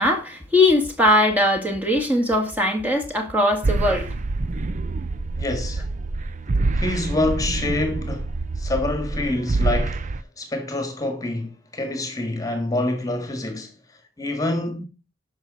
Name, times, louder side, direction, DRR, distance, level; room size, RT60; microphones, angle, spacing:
voice 1, 0.0-4.1, left 1 dB, 10° right, 1.8 m, -20 dB
sound 1, 3.6-10.2, right 2 dB, 40° right, 0.5 m, -26 dB
voice 2, 5.3-5.9 6.7-13.7 14.2-14.8, left 2 dB, 20° left, 1.6 m, -27 dB
11.5 x 5.9 x 4.0 m
head